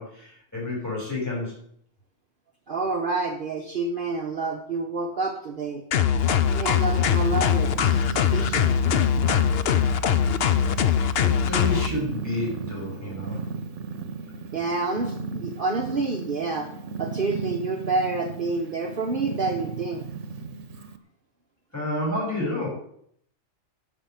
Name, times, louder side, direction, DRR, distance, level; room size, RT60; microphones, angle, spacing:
voice 1, 0.0-1.6 11.2-13.4 21.7-22.7, left 1 dB, 15° left, -5 dB, 6.8 m, -30 dB
voice 2, 2.7-5.8 6.4-8.8 14.5-16.7 17.0-20.1, right 3 dB, 45° right, 2 dB, 1.2 m, -28 dB
sound 1, 5.9-11.9, left 8 dB, 60° left, 0.9 m, -22 dB
Purr, 6.2-21.0, right 5 dB, 70° right, 1.3 m, -36 dB
10.0 x 7.0 x 8.9 m, 0.67 s
omnidirectional pair, 1.3 m